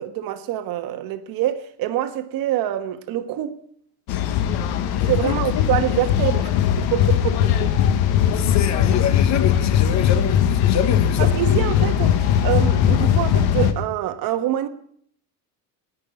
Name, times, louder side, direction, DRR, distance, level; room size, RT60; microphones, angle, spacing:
voice 1, 0.0-3.6 4.9-6.5 6.8-7.5 11.2-14.7, right 12 dB, 55° right, 1.3 m, -25 dB
sound 1, 4.1-13.7, left 9 dB, 60° left, 1.4 m, -19 dB
voice 2, 5.2-5.6 8.4-11.6, left 9 dB, 40° left, 1.0 m, -26 dB
19.0 x 6.5 x 8.2 m
cardioid pair, 150°, 42 cm